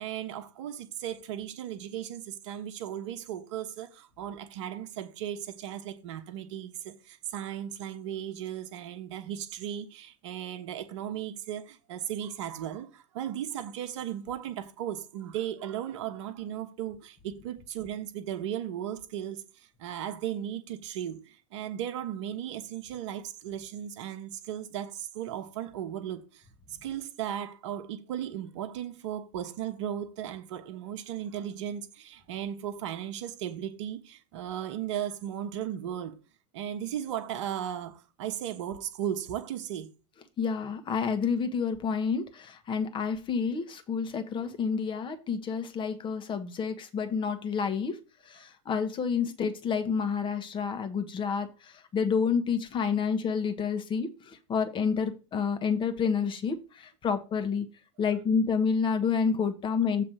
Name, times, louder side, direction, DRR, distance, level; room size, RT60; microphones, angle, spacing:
voice 1, 0.0-19.4 19.8-26.4 26.8-36.2 36.5-39.9, right 10 dB, 70° right, 1.1 m, -36 dB
voice 2, 40.4-47.9 48.3-51.5 51.9-57.6 58.0-60.0, left 6 dB, 30° left, 1.4 m, -29 dB
7.5 x 3.3 x 6.2 m
hypercardioid pair, 95°, 16 cm